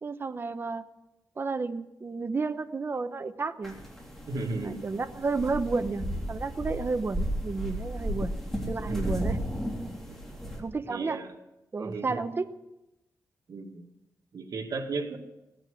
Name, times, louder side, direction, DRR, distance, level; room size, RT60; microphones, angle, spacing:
voice 1, 0.0-0.9 1.4-3.8 4.6-8.3 8.7-9.4 10.6-11.2 11.7-12.5, right 4 dB, 35° right, 9 dB, 0.9 m, -31 dB
sound 1, 3.6-10.6, equal, 5° left, 3.3 m, -34 dB
voice 2, 4.3-4.8 8.9-9.2 10.1-10.2 10.9-11.3 11.8-12.2 13.5-13.8 14.3-15.2, right 3 dB, 80° right, 1 dB, 2.1 m, -34 dB
17.0 x 9.0 x 8.3 m, 0.95 s
wide cardioid pair, 130°, 6 cm